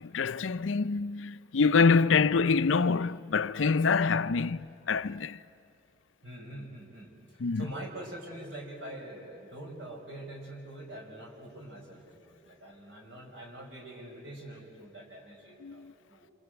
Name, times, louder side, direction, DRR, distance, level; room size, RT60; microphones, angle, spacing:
voice 1, 0.0-5.4 7.4-7.6 15.6-15.9, left 5 dB, 85° left, 0.6 m, -26 dB
voice 2, 2.1-2.5 6.2-16.3, right 1 dB, 70° right, 6.0 m, -45 dB
27.0 x 27.0 x 8.1 m
head